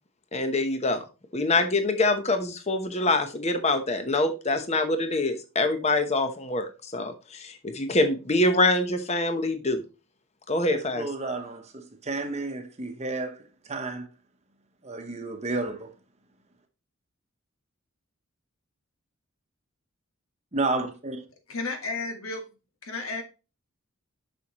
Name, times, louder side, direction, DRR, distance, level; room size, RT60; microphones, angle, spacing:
voice 1, 0.3-1.0 1.3-9.8 10.5-11.1, left 2 dB, 30° left, 0.9 m, -25 dB
voice 2, 10.7-14.1 14.8-15.9 20.5-21.2, right 2 dB, 30° right, 1.0 m, -31 dB
voice 3, 21.5-22.4 22.8-23.2, left 3 dB, 70° left, 1.5 m, -32 dB
6.8 x 6.2 x 3.0 m
head